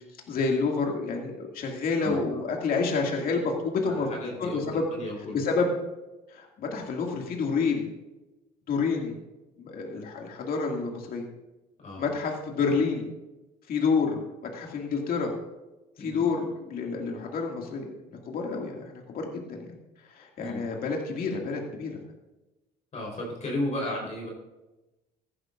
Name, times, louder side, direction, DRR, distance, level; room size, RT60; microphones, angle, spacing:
voice 1, 0.3-4.1 4.4-4.8 5.3-5.7 6.3-7.9 8.7-9.2 9.6-11.3 12.0-13.0 13.7-14.2 14.5-15.3 16.0-17.9 18.3-19.7 20.1-21.9, left 4 dB, 60° left, 1 dB, 2.2 m, -28 dB
voice 2, 2.0-2.4 3.8-5.4 11.8-12.1 16.0-16.2 20.4-20.7 22.9-24.3, left 1 dB, 45° left, -2 dB, 4.0 m, -34 dB
15.0 x 11.5 x 2.5 m, 1.1 s
cardioid pair, 110°, 17 cm